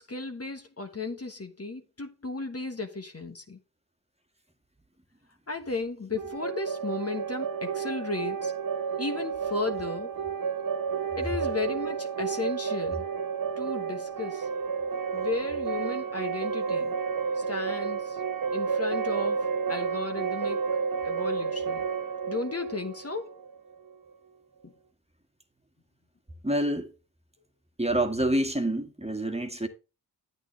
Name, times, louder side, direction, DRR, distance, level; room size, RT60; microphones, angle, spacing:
voice 1, 0.0-3.6 5.5-8.5 9.0-10.1 11.2-13.1 13.6-14.5 15.1-16.9 17.3-18.2 18.5-20.8 21.0-21.9 22.3-23.4 24.6-24.7, left 3 dB, 35° left, 1.3 m, -34 dB
sound 1, 6.2-23.9, right 6 dB, 55° right, 0.9 m, -31 dB
voice 2, 26.4-27.0 27.8-29.7, right 1 dB, 15° right, 1.8 m, -27 dB
8.9 x 8.6 x 3.2 m
cardioid pair, 40°, 40 cm